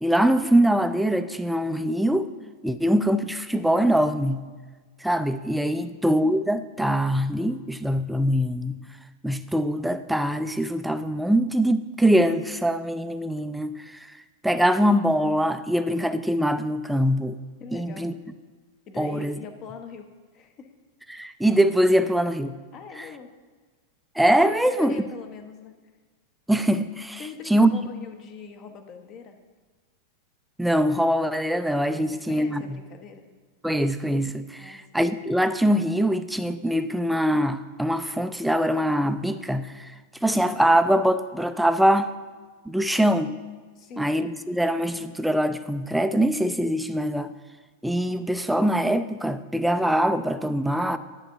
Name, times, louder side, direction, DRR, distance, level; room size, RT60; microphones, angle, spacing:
voice 1, 0.0-2.3 2.6-4.4 5.0-8.8 9.2-14.1 14.4-17.4 17.7-18.1 19.0-19.4 21.1-22.6 23.0-23.1 24.2-25.0 26.5-27.2 27.5-27.8 30.6-32.8 33.6-39.9 40.2-42.1 42.7-43.3 44.0-47.3 47.8-51.0, equal, ahead, 10 dB, 0.4 m, -23 dB
voice 2, 17.6-18.1 18.9-20.1 20.3-20.7 22.7-23.3 24.4-25.7 27.2-29.4 31.9-33.2 34.6-34.8 43.8-44.1, left 6 dB, 35° left, 7 dB, 0.8 m, -42 dB
10.5 x 3.6 x 6.5 m, 1.4 s
figure-of-eight pair, 90°, 0 cm